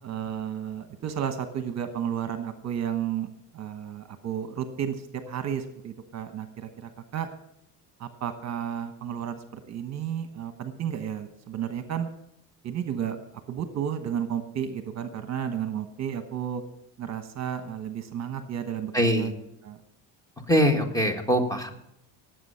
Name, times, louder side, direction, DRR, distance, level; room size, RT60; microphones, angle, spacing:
voice 1, 0.0-3.3 3.5-7.3 8.0-12.1 12.6-13.2 13.5-16.6 17.0-19.3 19.6-19.8, right 9 dB, 45° right, 8 dB, 1.1 m, -32 dB
voice 2, 18.9-19.3 20.5-21.7, equal, 10° left, 5 dB, 1.7 m, -22 dB
18.0 x 7.9 x 5.7 m, 0.80 s
cardioid pair, 135°, 38 cm